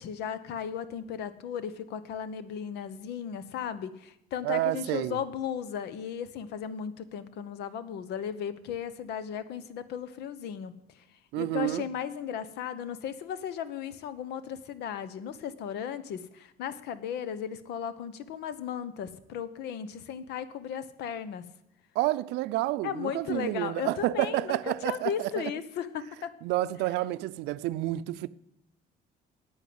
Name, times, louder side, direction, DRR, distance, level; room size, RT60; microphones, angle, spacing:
voice 1, 0.0-11.0 11.4-21.4 22.8-24.6 24.8-26.3, left 8 dB, 80° left, 1.0 m, -36 dB
voice 2, 4.4-5.2 11.3-11.9 21.9-25.5 26.4-28.3, right 16 dB, 90° right, 0.5 m, -29 dB
9.2 x 9.1 x 7.8 m
cardioid pair, 110°, 17 cm